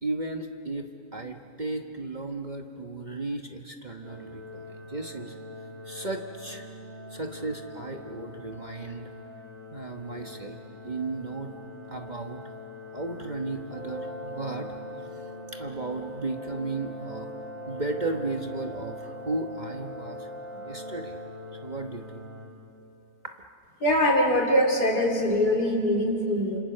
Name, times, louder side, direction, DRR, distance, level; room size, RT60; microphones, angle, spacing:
voice 1, 0.0-5.4 5.8-6.7 7.1-9.1 9.7-10.6 10.8-11.5 11.9-12.5 12.9-14.7 15.5-17.3 17.7-20.3 20.5-21.1 21.6-22.3, right 2 dB, 30° right, 3 dB, 1.2 m, -35 dB
sound 1, 4.0-22.5, left 2 dB, 65° right, 5.5 m, -44 dB
Brass instrument, 13.7-21.5, equal, 25° left, 2.7 m, -41 dB
voice 2, 23.8-26.6, equal, 85° left, 1 dB, 3.7 m, -23 dB
28.5 x 27.0 x 6.7 m, 2.8 s
omnidirectional pair, 1.7 m